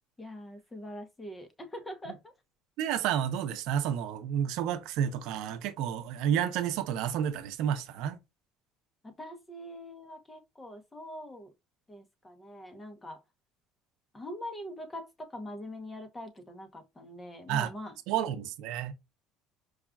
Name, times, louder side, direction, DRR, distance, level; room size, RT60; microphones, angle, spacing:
voice 1, 0.2-2.3 9.0-11.5 11.9-13.2 14.1-18.0, left 1 dB, 15° left, 0.8 m, -43 dB
voice 2, 2.8-8.2 17.5-17.7 18.1-18.9, right 9 dB, 75° right, 0.6 m, -30 dB
4.8 x 2.3 x 2.3 m
cardioid pair, 125°, 0 cm